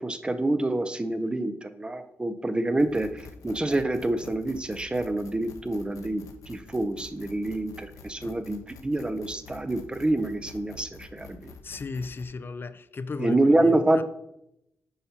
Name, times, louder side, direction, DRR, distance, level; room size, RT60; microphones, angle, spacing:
voice 1, 0.0-11.5 13.2-14.0, right 2 dB, 15° right, 0.6 m, -27 dB
sound 1, 2.8-12.3, left 4 dB, 70° left, 0.9 m, -47 dB
voice 2, 11.6-14.0, left 4 dB, 40° left, 0.4 m, -36 dB
7.8 x 5.4 x 2.8 m
cardioid pair, 85°, 6 cm